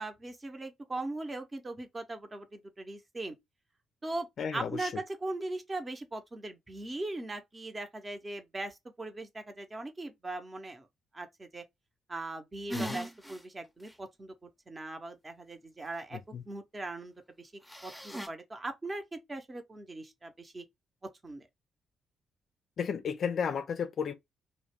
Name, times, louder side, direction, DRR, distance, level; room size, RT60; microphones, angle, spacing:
voice 1, 0.0-3.4 4.0-10.9 11.1-11.6 12.1-17.5 17.8-20.6 21.2-21.5, right 2 dB, 30° right, 0.8 m, -40 dB
voice 2, 4.4-4.9 12.7-13.0 16.3-16.4 22.8-24.1, left 7 dB, 55° left, 0.4 m, -33 dB
sound 1, 12.7-13.4 13.9-14.0 17.7-18.3, right 1 dB, 5° left, 0.6 m, -38 dB
2.3 x 2.1 x 3.3 m
hypercardioid pair, 40°, 0 cm